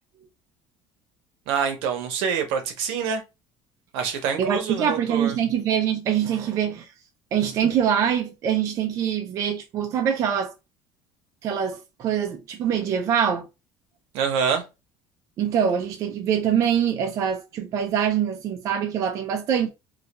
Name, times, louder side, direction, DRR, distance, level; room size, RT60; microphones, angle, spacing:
voice 1, 1.5-3.2 3.9-5.3 14.1-14.6, right 6 dB, 80° right, 0.7 m, -26 dB
voice 2, 4.4-6.9 7.3-10.5 11.4-13.5 15.4-19.7, right 8 dB, 35° right, 0.3 m, -24 dB
2.3 x 2.2 x 2.8 m
cardioid pair, 165°, 9 cm